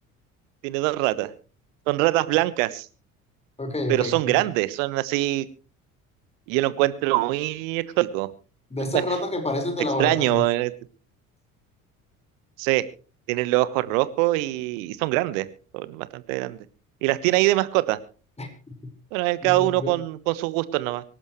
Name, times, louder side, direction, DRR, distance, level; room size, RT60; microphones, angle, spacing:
voice 1, 0.6-1.3 1.9-2.9 3.9-5.5 6.5-8.3 8.9-9.0 10.0-10.7 12.6-12.8 13.3-15.5 15.7-16.6 17.0-18.0 19.1-21.0, right 18 dB, 65° right, 1.3 m, -23 dB
voice 2, 3.6-4.4 8.7-10.4 18.4-18.5 19.4-19.9, left 2 dB, 15° left, 4.8 m, -28 dB
25.0 x 12.0 x 3.1 m
figure-of-eight pair, 55°, 42 cm